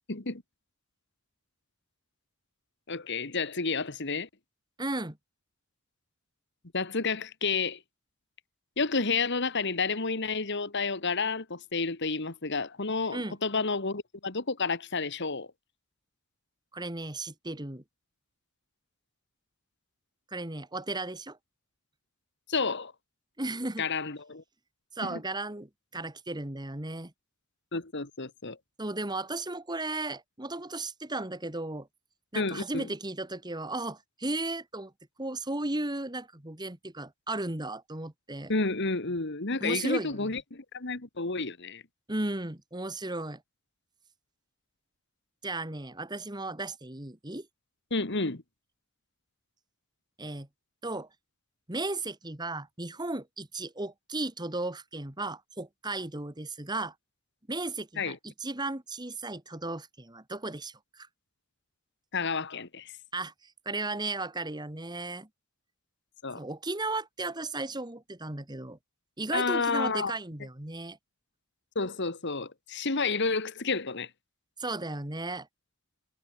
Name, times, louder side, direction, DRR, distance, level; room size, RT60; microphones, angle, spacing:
voice 1, 0.1-0.4 2.9-4.3 6.7-7.8 8.8-15.5 22.5-22.9 23.8-24.4 25.0-25.2 27.7-28.6 32.4-32.9 38.5-41.8 47.9-48.4 58.0-58.2 62.1-62.9 66.2-66.4 69.3-70.1 71.8-74.1, left 4 dB, 55° left, 2.0 m, -30 dB
voice 2, 4.8-5.2 13.1-13.4 16.7-17.8 20.3-21.4 23.4-23.9 24.9-27.1 28.8-31.9 32.3-34.9 35.2-38.5 39.6-40.3 42.1-43.4 45.4-47.5 50.2-50.5 50.8-51.1 51.7-56.9 57.5-61.1 63.1-65.3 66.4-68.8 69.2-71.0 74.6-75.5, right 2 dB, 20° right, 2.0 m, -35 dB
head